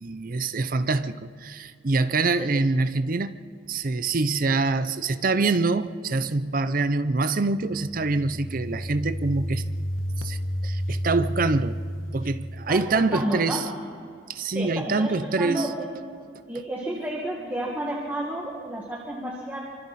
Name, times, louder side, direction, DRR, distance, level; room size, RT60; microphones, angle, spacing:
voice 1, 0.0-3.4 3.7-9.6 10.2-10.4 10.6-11.8 12.1-13.7 14.3-15.7, right 3 dB, 45° right, 0.7 m, -25 dB
sound 1, 7.6-13.2, equal, 85° left, 1.2 m, -32 dB
voice 2, 12.7-13.6 14.5-15.9 16.5-19.6, right 1 dB, 10° right, 2.0 m, -31 dB
26.0 x 25.0 x 4.3 m
head